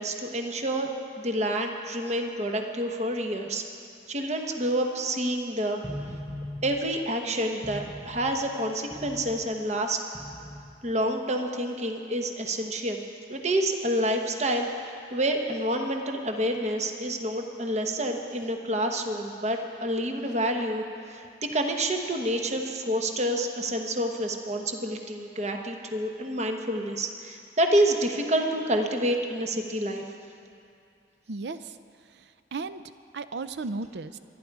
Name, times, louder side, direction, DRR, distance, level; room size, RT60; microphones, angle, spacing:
voice 1, 0.0-3.6 4.1-5.8 6.6-10.0 10.8-13.0 13.3-14.7 15.1-20.8 21.1-30.0, right 1 dB, 35° right, 3 dB, 1.1 m, -28 dB
sound 1, 5.8-6.9 7.6-8.5 8.9-9.6 10.1-10.8, left 1 dB, 20° right, 4.3 m, -40 dB
voice 2, 31.3-31.8 32.1-32.8 33.1-34.2, right 3 dB, 65° right, 13 dB, 0.5 m, -35 dB
26.0 x 10.5 x 4.7 m, 2.5 s
head